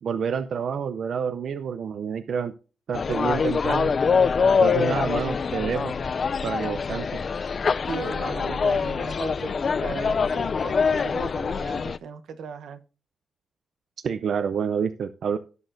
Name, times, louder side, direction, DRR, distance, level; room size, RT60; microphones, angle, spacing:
voice 1, 0.0-2.5 2.9-3.9 4.6-5.9 6.4-7.2 14.0-15.4, right 7 dB, 60° right, 12 dB, 0.5 m, -28 dB
sound 1, 2.9-12.0, left 5 dB, 40° left, 0.4 m, -24 dB
voice 2, 7.9-12.8, right 6 dB, 85° right, 10 dB, 0.9 m, -37 dB
17.5 x 6.1 x 2.6 m, 0.35 s
wide cardioid pair, 135°, 0 cm